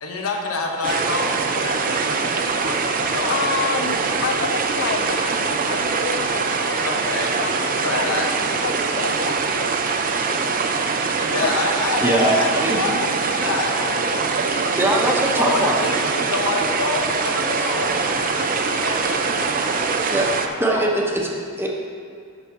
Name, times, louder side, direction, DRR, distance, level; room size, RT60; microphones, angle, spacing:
voice 1, 0.0-3.7 6.8-7.3 7.6-8.3 11.2-14.8 15.1-19.9 20.5-21.0, left 2 dB, 80° left, 1 dB, 1.2 m, -28 dB
sound 1, 0.8-20.5, right 4 dB, 40° right, 0.5 m, -23 dB
voice 2, 3.3-7.0 7.4-7.6 7.9-8.2 8.6-10.5 10.8-10.9 11.4-11.5 11.9-12.0 12.4-12.5 13.0-13.1 13.6-14.0, left 6 dB, 50° left, 7 dB, 0.3 m, -30 dB
voice 3, 12.0-12.9 14.7-15.8 20.1-20.3 20.6-21.7, right 1 dB, 10° right, -1 dB, 0.9 m, -21 dB
8.3 x 5.6 x 6.0 m, 2.3 s
head